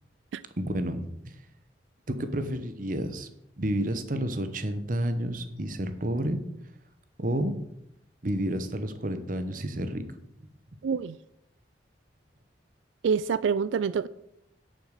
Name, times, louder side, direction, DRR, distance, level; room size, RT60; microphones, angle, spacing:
voice 1, 0.6-1.4 2.1-3.3 3.6-6.4 7.2-7.6 8.2-10.0, right 1 dB, 45° right, 9 dB, 1.0 m, -30 dB
voice 2, 10.8-11.2 13.0-14.1, right 6 dB, 90° right, 16 dB, 0.3 m, -26 dB
10.5 x 6.5 x 6.5 m, 0.81 s
head